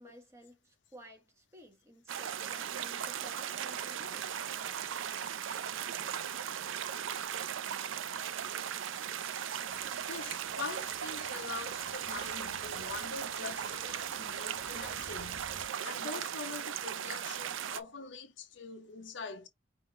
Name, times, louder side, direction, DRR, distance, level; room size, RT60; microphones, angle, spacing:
voice 1, 0.0-4.3, equal, 15° right, 1.3 m, -55 dB
sound 1, 2.1-17.8, right 9 dB, 80° right, 0.5 m, -38 dB
sound 2, 9.7-15.7, right 3 dB, 50° right, 1.9 m, -54 dB
voice 2, 10.1-15.5 15.8-19.5, left 4 dB, 70° left, 0.7 m, -44 dB
5.5 x 2.7 x 3.1 m
head